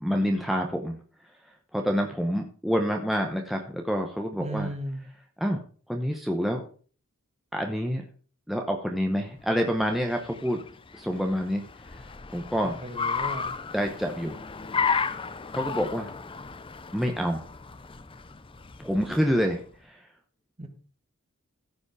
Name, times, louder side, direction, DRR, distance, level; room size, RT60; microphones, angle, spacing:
voice 1, 0.0-1.0 1.7-4.7 5.4-5.6 5.9-6.6 7.5-8.0 8.5-10.6 10.9-11.6 12.3-12.8 13.7-14.4 15.5-16.1 16.9-17.4 18.8-20.0, equal, ahead, 2 dB, 1.0 m, -27 dB
voice 2, 4.4-5.0 12.6-13.5 20.6-20.7, right 1 dB, 30° right, 5 dB, 1.7 m, -35 dB
Car, 9.4-19.7, left 5 dB, 25° left, 0.6 m, -34 dB
15.0 x 5.2 x 4.8 m, 0.41 s
head